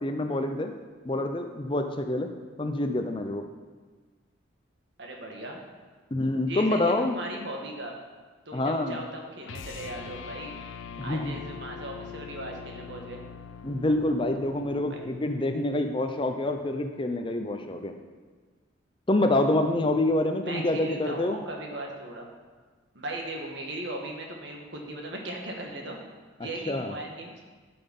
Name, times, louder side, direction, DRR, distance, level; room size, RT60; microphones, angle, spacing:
voice 1, 0.0-0.7 1.0-2.3 2.6-3.4 6.1-7.2 8.5-9.0 11.0-11.4 13.6-17.9 19.1-21.4 26.7-26.9, left 1 dB, 25° left, 6 dB, 0.5 m, -27 dB
voice 2, 5.0-5.6 6.5-7.9 8.4-10.5 11.0-13.2 14.9-15.0 20.4-22.3 22.9-26.0 26.4-27.3, right 1 dB, 60° right, 0 dB, 1.6 m, -38 dB
sound 1, 9.4-15.8, left 6 dB, 70° left, 0.6 m, -43 dB
12.5 x 5.9 x 5.3 m, 1.4 s
head